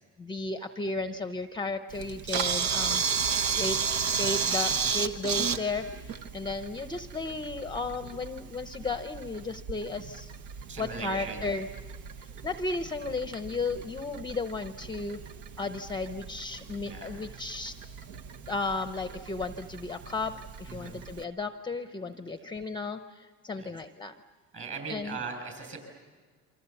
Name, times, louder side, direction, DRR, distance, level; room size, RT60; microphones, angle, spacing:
voice 1, 0.2-3.0 3.5-3.8 4.1-10.3 10.8-11.7 12.2-15.2 15.6-17.7 18.4-20.3 20.6-24.1 24.9-25.2, left 3 dB, 15° left, 8 dB, 0.7 m, -34 dB
Camera, 1.9-21.2, right 6 dB, 80° right, 1.3 m, -34 dB
voice 2, 10.7-11.4 16.8-17.1 20.8-21.0 23.6-23.7 24.5-25.8, right 4 dB, 35° right, 5 dB, 7.0 m, -38 dB
28.5 x 25.0 x 7.1 m, 1.5 s
cardioid pair, 140°, 34 cm